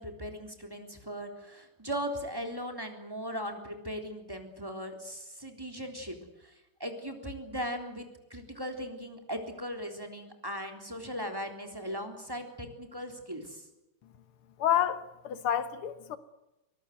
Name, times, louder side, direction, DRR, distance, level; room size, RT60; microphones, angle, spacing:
voice 1, 0.0-6.2 6.4-6.5 6.8-13.6, equal, 10° right, 3.6 m, -38 dB
voice 2, 14.6-16.2, left 10 dB, 80° left, 2.0 m, -29 dB
23.5 x 20.0 x 8.0 m
omnidirectional pair, 2.4 m